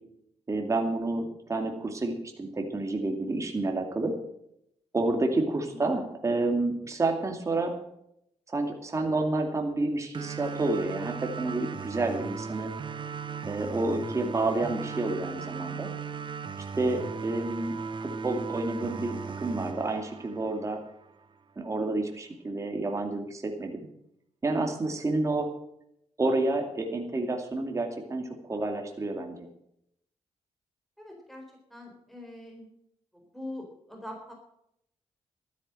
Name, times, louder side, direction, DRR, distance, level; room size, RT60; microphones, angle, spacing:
voice 1, 0.5-4.1 4.9-7.7 8.5-12.7 13.5-15.9 16.8-20.8 21.6-23.9 24.4-25.5 26.2-29.5, right 2 dB, 25° right, 3 dB, 2.4 m, -29 dB
sound 1, 10.1-21.1, right 5 dB, 45° right, 1.0 m, -37 dB
voice 2, 31.0-31.4 31.7-32.7 33.3-34.3, left 1 dB, ahead, 1 dB, 3.9 m, -43 dB
13.0 x 10.0 x 7.7 m, 0.76 s
cardioid pair, 105°, 11 cm